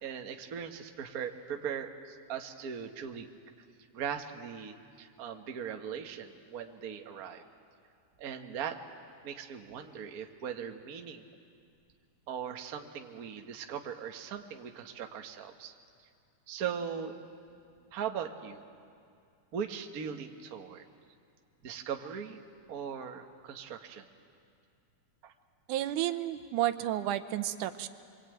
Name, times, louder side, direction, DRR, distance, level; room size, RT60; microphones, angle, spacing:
voice 1, 0.0-3.3 3.9-7.4 8.2-8.8 9.2-11.2 12.3-15.7 16.5-17.1 17.9-18.6 19.5-20.9 21.6-22.4 22.7-24.1 25.2-25.3, right 7 dB, 55° right, 4 dB, 1.0 m, -39 dB
voice 2, 25.7-27.9, right 13 dB, 90° right, 11 dB, 2.3 m, -31 dB
25.0 x 23.5 x 9.1 m, 2.4 s
omnidirectional pair, 3.5 m